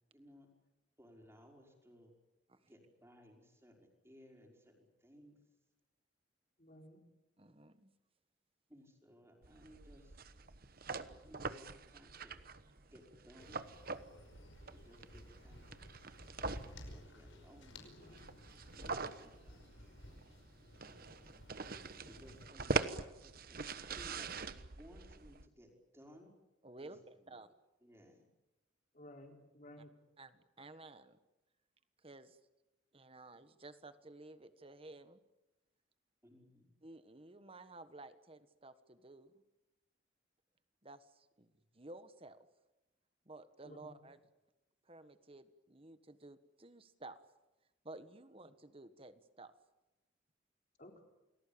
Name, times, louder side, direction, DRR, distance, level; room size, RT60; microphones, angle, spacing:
voice 1, 0.1-0.5 1.0-2.1 2.7-5.4 8.7-10.3 11.2-12.3 12.9-13.7 14.7-15.8 16.4-18.2 18.7-19.7 22.0-26.3 26.8-26.9 27.2-27.3 27.8-28.3 36.2-36.7, equal, 15° right, 1 dB, 5.4 m, -60 dB
voice 2, 6.6-7.0 28.9-29.9 43.6-44.0 50.8-51.0, left 1 dB, 40° left, 3 dB, 4.4 m, -55 dB
voice 3, 7.4-7.9 12.7-12.9 22.1-22.2 26.6-27.5 30.2-31.2 32.0-32.4 32.9-35.2 36.8-39.3 40.8-42.5 43.2-44.2 44.8-47.2 47.8-49.5, right 2 dB, 30° right, 11 dB, 1.5 m, -54 dB
sound 1, 9.4-25.5, right 4 dB, 50° right, 1.2 m, -44 dB
sound 2, 13.4-22.5, left 1 dB, 75° left, 5.4 m, -55 dB
29.0 x 20.0 x 8.8 m, 1.0 s
head